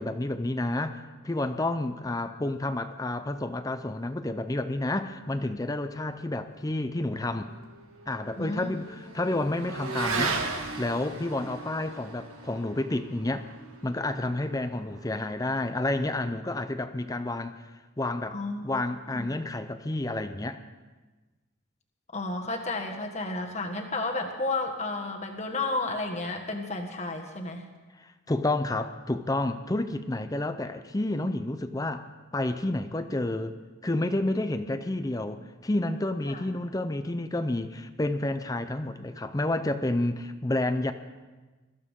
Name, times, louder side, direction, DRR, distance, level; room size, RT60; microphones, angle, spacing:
voice 1, 0.0-7.5 8.1-10.4 10.8-13.5 13.8-17.5 18.0-18.4 18.6-20.6 28.0-33.6 33.8-40.9, left 2 dB, 15° left, 10 dB, 0.5 m, -30 dB
Motorcycle / Accelerating revving vroom, 7.1-15.9, right 4 dB, 85° right, 1.9 m, -37 dB
voice 2, 8.3-8.7 18.3-18.6 19.1-19.3 22.1-27.6 36.2-36.4, left 2 dB, 30° left, 2 dB, 1.6 m, -32 dB
22.0 x 14.5 x 3.7 m, 1.2 s
head